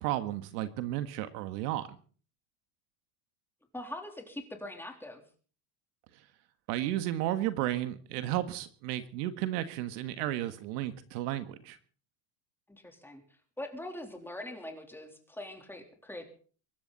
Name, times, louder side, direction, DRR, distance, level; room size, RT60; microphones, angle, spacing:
voice 1, 0.0-1.9 6.7-11.8, right 13 dB, 75° right, 10 dB, 1.7 m, -33 dB
voice 2, 3.7-5.2 12.7-13.2 13.6-16.3, left 1 dB, 5° left, 3 dB, 3.4 m, -42 dB
23.5 x 12.5 x 4.1 m, 0.42 s
supercardioid pair, 125°, 47 cm